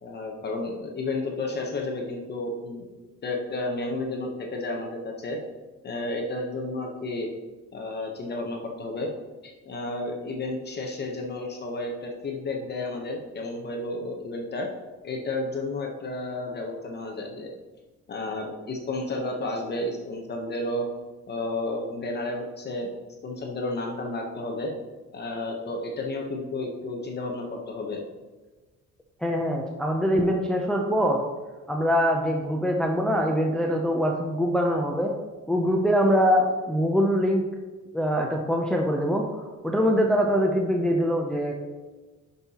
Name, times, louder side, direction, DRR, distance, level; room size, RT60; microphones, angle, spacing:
voice 1, 0.0-2.9 3.2-5.4 5.8-7.3 7.7-9.1 9.4-14.7 15.0-17.5 18.1-20.9 21.3-22.9 23.2-24.7 25.1-28.0, left 2 dB, 35° left, 1 dB, 0.8 m, -32 dB
voice 2, 29.2-31.2 31.7-35.1 35.5-37.4 37.9-41.5, equal, 5° left, 1 dB, 0.4 m, -23 dB
10.0 x 5.5 x 2.8 m, 1.2 s
cardioid pair, 180°, 30 cm